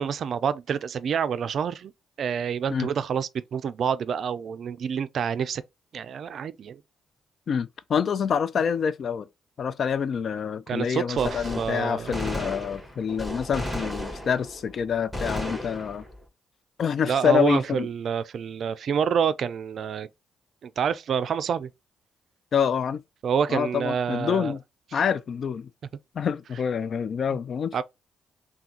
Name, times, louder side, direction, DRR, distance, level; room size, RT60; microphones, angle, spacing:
voice 1, 0.0-1.9 2.2-5.6 5.9-6.8 10.7-12.3 17.0-20.1 20.6-21.7 23.2-24.6 27.7-27.8, right 7 dB, 65° right, 0.3 m, -27 dB
voice 2, 7.5-9.3 9.6-16.1 16.8-17.9 22.5-23.0 23.5-24.6 24.9-25.7 26.1-27.8, left 7 dB, 60° left, 0.3 m, -26 dB
Gunshot gunfire, 11.2-14.7 15.1-16.2, left 1 dB, 10° left, 1.7 m, -34 dB
3.5 x 2.2 x 2.7 m
hypercardioid pair, 50°, 0 cm